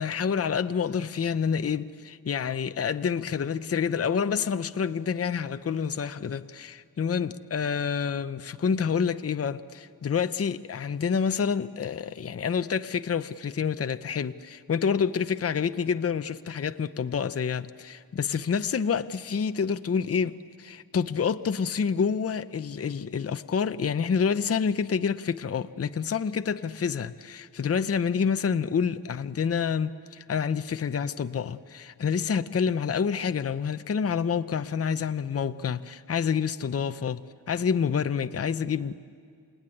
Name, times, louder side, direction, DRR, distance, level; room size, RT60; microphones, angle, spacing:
voice 1, 0.0-37.2 37.5-39.0, left 6 dB, 40° left, 0.6 m, -28 dB
28.5 x 18.0 x 9.7 m
wide cardioid pair, 130°, 38 cm